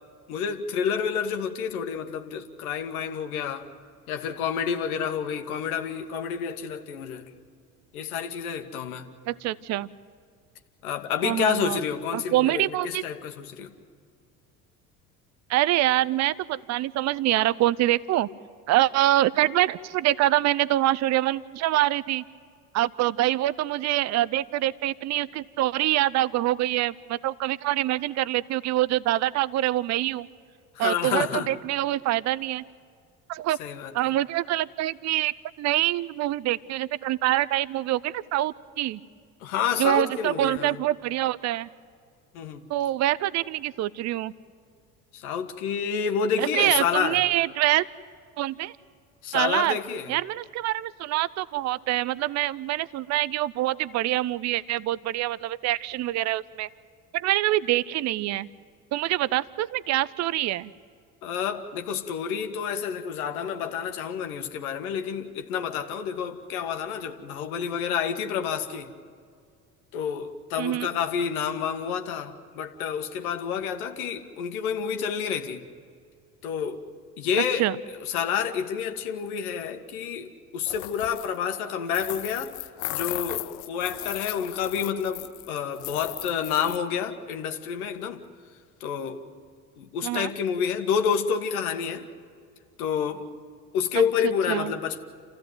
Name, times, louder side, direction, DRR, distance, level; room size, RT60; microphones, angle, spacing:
voice 1, 0.3-3.7 4.1-7.3 7.9-9.1 10.8-13.7 30.8-31.5 33.6-33.9 39.4-40.8 42.3-42.7 45.1-47.3 49.2-50.1 61.2-68.9 69.9-75.7 76.4-76.8 77.2-77.7 78.0-82.5 82.9-88.2 88.8-89.2 89.8-92.1 92.8-93.3 93.7-95.0, left 7 dB, 70° left, 6 dB, 1.7 m, -29 dB
voice 2, 9.3-9.9 11.2-11.8 12.1-13.0 15.5-18.3 18.7-22.2 22.7-30.3 30.8-32.6 33.3-33.6 33.9-39.0 39.8-41.7 42.7-44.3 46.4-47.9 48.4-48.7 49.3-49.8 50.1-56.7 57.1-58.5 58.9-60.7 70.6-70.9 77.6-77.8 90.0-90.3 94.0-94.7, right 15 dB, 40° right, 19 dB, 0.6 m, -25 dB
sound 1, 80.7-81.4 81.9-85.5 85.7-86.8, left 20 dB, 50° left, 0.6 m, -36 dB
28.0 x 15.5 x 9.4 m, 2.2 s
figure-of-eight pair, 65°, 45 cm